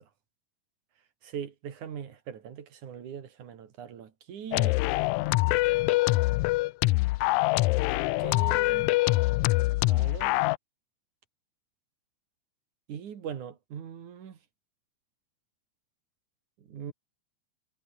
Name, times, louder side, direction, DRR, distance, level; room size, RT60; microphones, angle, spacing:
voice 1, 1.2-4.8 7.6-7.7 8.2-8.9 9.5-10.4 12.9-14.4 16.7-16.9, right 8 dB, 75° right, 3.8 m, -41 dB
sound 1, 4.5-10.6, left 20 dB, 80° left, 1.9 m, -24 dB
omnidirectional pair, 3.5 m